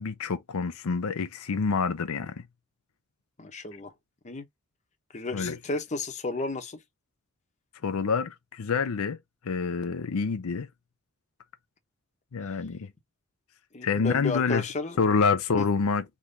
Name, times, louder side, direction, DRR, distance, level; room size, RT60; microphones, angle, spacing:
voice 1, 0.0-2.4 5.3-5.6 7.8-9.2 9.4-10.7 12.3-12.9 13.8-14.6 15.0-16.0, left 5 dB, 75° left, 0.5 m, -27 dB
voice 2, 3.4-3.9 4.2-4.4 5.1-6.8 13.7-15.0, left 3 dB, 30° left, 0.9 m, -33 dB
3.6 x 3.1 x 3.9 m
head